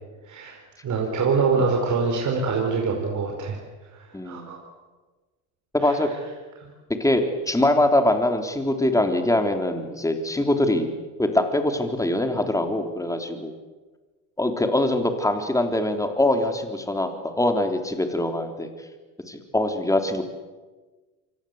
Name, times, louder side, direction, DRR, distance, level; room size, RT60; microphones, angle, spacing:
voice 1, 0.3-0.6 0.8-3.6 3.9-4.6 5.8-6.0 6.6-6.7, right 4 dB, 45° right, 1 dB, 5.1 m, -25 dB
voice 2, 4.1-4.5 5.7-6.1 7.0-10.9 11.2-13.5 14.4-18.7 19.3-20.2, left 1 dB, 10° left, 5 dB, 3.7 m, -23 dB
27.5 x 24.5 x 8.1 m, 1.3 s
supercardioid pair, 105°, 41 cm